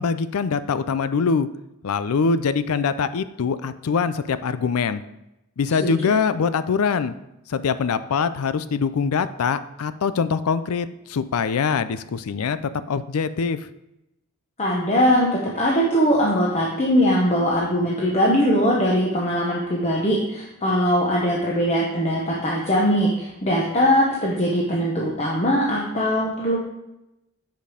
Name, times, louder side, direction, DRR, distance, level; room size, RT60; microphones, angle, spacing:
voice 1, 0.0-1.5 1.8-5.0 5.6-7.2 7.5-12.6 12.9-13.6, left 5 dB, 90° left, 13 dB, 0.4 m, -23 dB
voice 2, 14.6-26.6, equal, 30° left, -3 dB, 1.1 m, -21 dB
9.1 x 5.2 x 5.0 m, 0.90 s
head